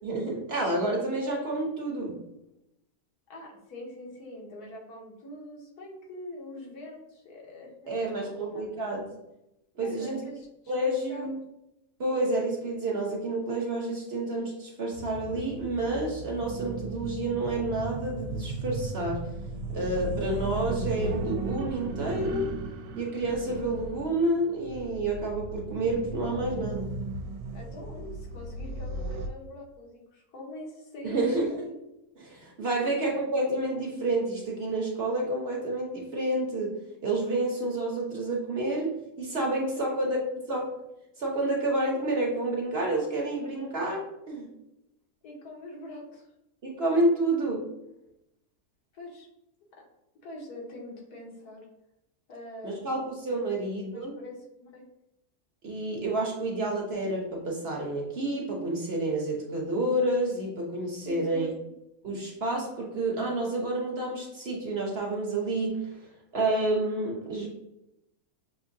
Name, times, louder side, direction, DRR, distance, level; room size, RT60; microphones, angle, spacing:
voice 1, 0.0-2.2 7.9-9.1 9.8-10.2 10.7-11.4 12.0-19.3 19.7-22.6 23.0-26.9 31.0-31.7 32.2-40.2 40.5-40.8 41.2-44.5 46.6-47.7 52.6-54.2 55.6-61.5 62.0-67.5, right 2 dB, 50° right, -2 dB, 0.9 m, -29 dB
voice 2, 3.3-8.7 9.8-10.5 10.8-11.3 27.5-31.6 32.8-32.9 39.7-40.0 45.2-46.3 48.9-49.3 49.7-49.8 50.2-51.7 52.3-53.0 53.4-53.5 53.9-54.8 61.0-61.7, left 1 dB, 85° left, -1 dB, 1.6 m, -44 dB
sound 1, 14.9-29.3, right 2 dB, 80° right, 1.1 m, -36 dB
6.5 x 2.7 x 2.6 m, 0.87 s
omnidirectional pair, 1.6 m